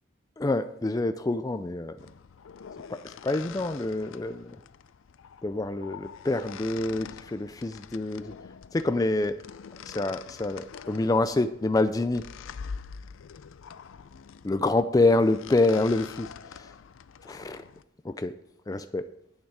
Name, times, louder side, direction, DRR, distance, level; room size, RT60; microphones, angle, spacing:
voice 1, 0.4-2.0 2.9-4.6 5.4-8.3 8.7-9.4 9.8-12.3 14.4-16.7 17.2-17.6 18.0-18.4 18.7-19.1, left 2 dB, 20° left, 10 dB, 0.3 m, -27 dB
sound 1, 2.0-17.8, left 6 dB, 90° left, 0.4 m, -45 dB
10.5 x 8.8 x 4.7 m, 0.75 s
head